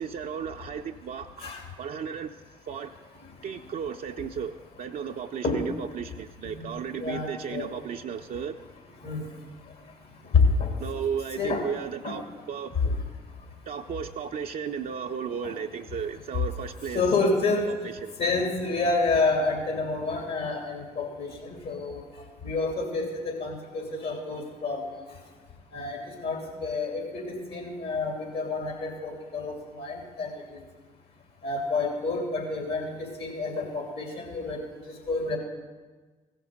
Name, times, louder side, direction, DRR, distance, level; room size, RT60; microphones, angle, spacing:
voice 1, 0.0-1.5 1.8-2.3 2.7-2.9 3.4-4.5 4.8-8.6 10.8-12.8 13.7-17.0 17.7-18.1, right 7 dB, 55° right, 2 dB, 0.5 m, -34 dB
voice 2, 7.0-7.7 9.0-9.3 10.3-10.7 11.4-11.6 12.0-12.2 12.8-12.9 15.4-15.5 16.9-17.7 18.2-22.0 22.4-25.0 25.7-30.3 31.4-34.6 35.1-35.4, left 3 dB, 65° left, 1 dB, 2.6 m, -28 dB
16.0 x 5.9 x 5.2 m, 1.4 s
hypercardioid pair, 45°, 18 cm